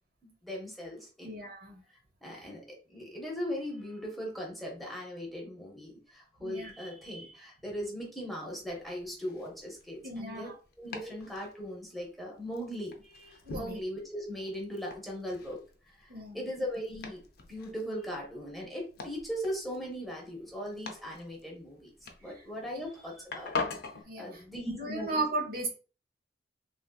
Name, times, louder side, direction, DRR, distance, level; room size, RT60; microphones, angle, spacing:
voice 1, 0.2-1.3 2.2-10.5 10.8-15.6 16.0-16.1 16.3-17.2 17.5-21.9 22.2-23.5 24.2-25.2, equal, ahead, -2 dB, 0.8 m, -39 dB
voice 2, 1.2-1.8 2.3-2.5 6.4-6.7 10.0-10.5 11.0-11.1 13.4-13.8 16.1-16.4 24.1-25.7, right 2 dB, 55° right, 1 dB, 0.8 m, -36 dB
Domestic sounds home sounds, 8.5-24.0, left 4 dB, 60° left, 0.5 m, -44 dB
3.2 x 2.6 x 2.2 m, 0.37 s
head